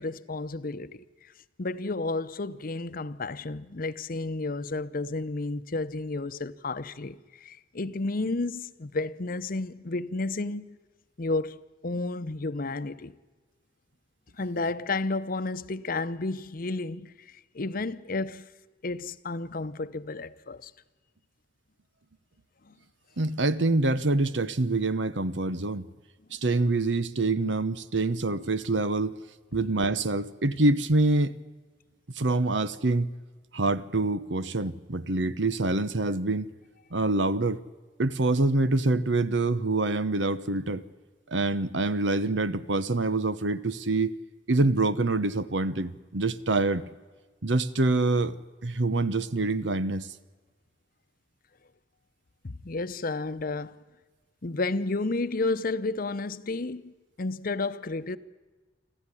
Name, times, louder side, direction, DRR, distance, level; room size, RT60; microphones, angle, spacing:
voice 1, 0.0-1.3 1.6-10.8 11.2-13.1 14.4-18.5 18.8-20.7 22.6-22.7 52.4-53.7 54.4-58.2, left 3 dB, 50° left, 0.8 m, -32 dB
voice 2, 23.2-25.9 26.3-29.1 29.5-31.4 32.2-33.1 33.5-36.5 36.9-37.6 38.0-40.8 41.3-44.1 44.5-46.8 47.4-48.4 48.6-50.1, right 2 dB, 80° right, 1.0 m, -26 dB
26.5 x 14.5 x 9.9 m
head